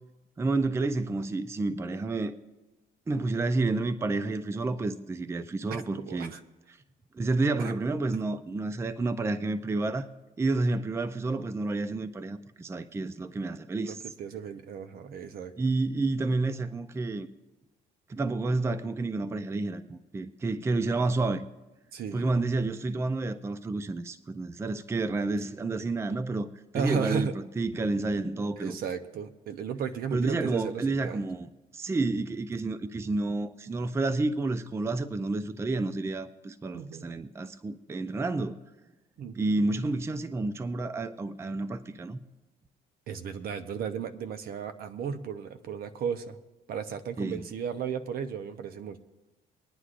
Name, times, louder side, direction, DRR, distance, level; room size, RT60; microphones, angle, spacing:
voice 1, 0.4-2.4 3.1-6.3 6.7-6.8 7.1-10.1 10.4-14.0 15.6-17.3 18.1-21.4 22.1-26.5 26.7-28.8 30.1-38.6 39.3-42.2 47.2-47.4, right 3 dB, 15° right, 12 dB, 0.5 m, -30 dB
voice 2, 5.7-6.4 7.6-7.7 13.8-15.5 21.9-22.2 26.7-27.3 28.6-31.2 36.7-37.1 39.2-39.5 43.1-46.4 46.7-49.0, right 7 dB, 65° right, 9 dB, 0.8 m, -34 dB
24.5 x 9.7 x 2.5 m, 1.1 s
cardioid pair, 110°, 17 cm